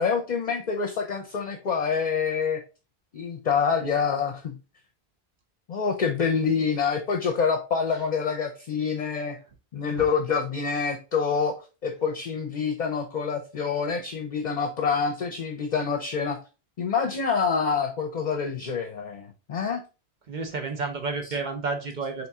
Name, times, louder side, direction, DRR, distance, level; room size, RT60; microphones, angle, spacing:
voice 1, 0.0-2.6 3.1-4.6 5.7-9.4 9.7-11.6 11.8-16.4 16.8-19.8, left 6 dB, 50° left, 4 dB, 0.7 m, -26 dB
voice 2, 20.3-22.3, right 4 dB, 50° right, 4 dB, 0.9 m, -31 dB
4.1 x 2.9 x 3.5 m, 0.31 s
omnidirectional pair, 1.1 m